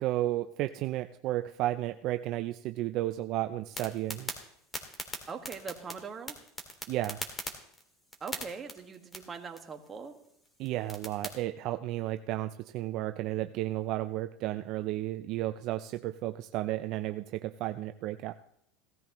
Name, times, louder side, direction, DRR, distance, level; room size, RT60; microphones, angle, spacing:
voice 1, 0.0-4.3 6.9-7.2 10.6-18.3, right 15 dB, 55° right, 9 dB, 0.5 m, -33 dB
sound 1, 3.7-11.4, left 1 dB, 15° left, 2.3 m, -43 dB
voice 2, 5.3-6.4 8.2-10.2, right 5 dB, 25° right, 4 dB, 1.7 m, -41 dB
17.0 x 14.0 x 3.1 m, 0.73 s
supercardioid pair, 120°, 0 cm